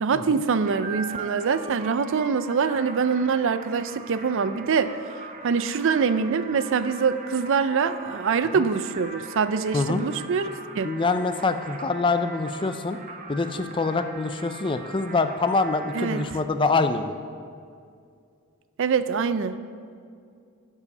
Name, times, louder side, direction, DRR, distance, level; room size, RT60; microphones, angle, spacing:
voice 1, 0.0-4.9 5.4-10.5 10.7-10.9 15.9-16.2 18.8-19.6, right 5 dB, 60° right, 12 dB, 0.4 m, -24 dB
sound 1, 0.7-16.2, right 3 dB, 35° right, 1.0 m, -41 dB
voice 2, 10.8-13.0 13.3-17.2, left 3 dB, 25° left, 9 dB, 0.4 m, -25 dB
12.0 x 4.9 x 6.6 m, 2.3 s
head